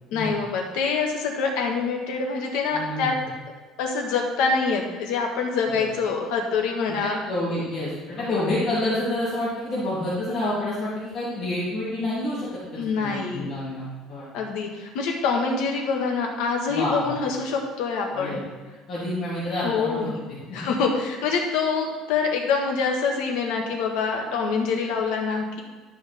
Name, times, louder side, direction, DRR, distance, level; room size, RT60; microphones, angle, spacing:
voice 1, 0.1-3.2 3.8-7.2 8.2-8.6 12.8-13.5 14.3-18.4 19.6-20.1 20.5-25.6, left 5 dB, 90° left, 1 dB, 1.6 m, -25 dB
voice 2, 2.7-3.1 5.7-5.8 6.9-14.2 16.7-17.1 18.1-18.4 18.9-20.1 20.5-20.6, left 1 dB, 35° left, -12 dB, 2.9 m, -28 dB
12.0 x 5.4 x 3.6 m, 1.3 s
cardioid pair, 180°, 0 cm